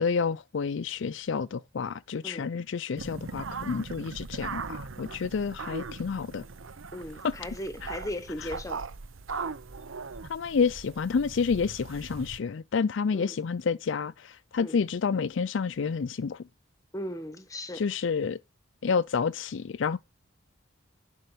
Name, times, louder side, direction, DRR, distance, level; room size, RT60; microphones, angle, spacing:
voice 1, 0.0-6.4 10.3-16.4 17.8-18.4 18.8-20.0, left 5 dB, 65° left, 0.4 m, -29 dB
sound 1, 3.0-12.4, right 4 dB, 80° right, 0.8 m, -39 dB
voice 2, 6.9-8.8 13.1-13.4 14.6-14.8 16.9-18.1, left 1 dB, 15° left, 1.0 m, -37 dB
11.0 x 4.5 x 5.6 m
head